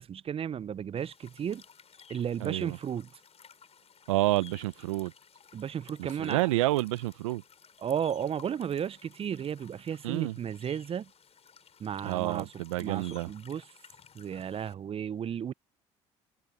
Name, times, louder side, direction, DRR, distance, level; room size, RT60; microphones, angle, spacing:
voice 1, 0.0-1.6 2.1-3.1 5.5-6.5 7.8-11.1 11.8-12.5 12.8-13.6 14.1-15.5, right 8 dB, 35° right, 0.5 m, -34 dB
sound 1, 1.0-14.7, left 7 dB, 40° left, 4.7 m, -56 dB
voice 2, 2.4-2.8 4.1-5.1 6.0-7.4 10.0-10.4 12.0-13.3, right 18 dB, 90° right, 0.7 m, -29 dB
hypercardioid pair, 65°, 16 cm